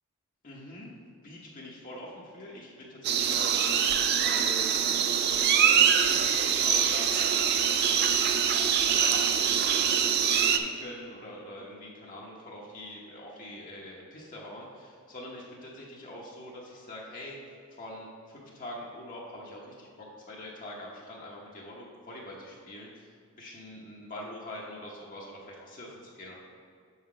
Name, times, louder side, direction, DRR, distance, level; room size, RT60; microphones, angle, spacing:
voice 1, 0.4-0.9 1.2-17.4 17.7-26.3, left 1 dB, 40° left, -4 dB, 0.9 m, -44 dB
sound 1, 3.0-10.6, right 8 dB, 50° right, 0.4 m, -24 dB
6.9 x 5.7 x 4.9 m, 2.2 s
head